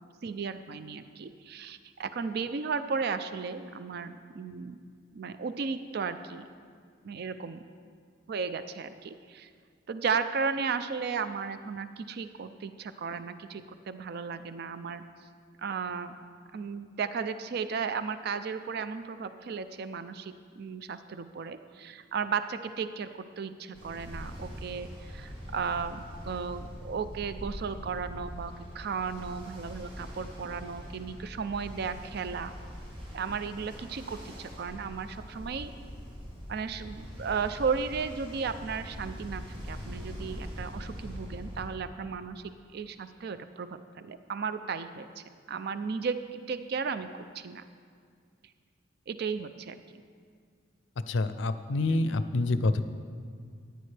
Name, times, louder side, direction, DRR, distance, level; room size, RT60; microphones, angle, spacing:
voice 1, 0.2-4.8 5.1-6.4 7.0-7.6 8.3-9.5 9.9-15.0 15.6-16.1 16.5-23.1 23.4-32.5 33.1-35.7 36.5-42.4 42.7-43.7 44.0-47.6 49.1-50.0 51.9-52.0, right 5 dB, 55° right, 11 dB, 0.4 m, -35 dB
Ocean, 23.7-41.7, equal, 30° right, 3.0 m, -43 dB
voice 2, 51.1-52.8, left 2 dB, 75° left, 12 dB, 0.5 m, -27 dB
14.0 x 9.3 x 3.3 m, 2.1 s
head